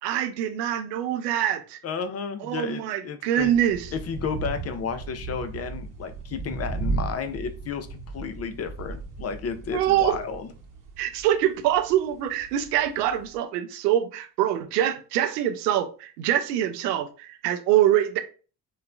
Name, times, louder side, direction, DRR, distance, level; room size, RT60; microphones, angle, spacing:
voice 1, 0.0-1.8 2.4-3.9 9.7-10.2 11.0-18.2, right 11 dB, 80° right, 0.5 m, -24 dB
voice 2, 1.8-3.5 3.9-10.5, left 6 dB, 30° left, 0.6 m, -32 dB
sound 1, 3.4-13.4, right 3 dB, 40° right, 0.9 m, -36 dB
3.0 x 2.2 x 2.3 m
figure-of-eight pair, 40°, 48 cm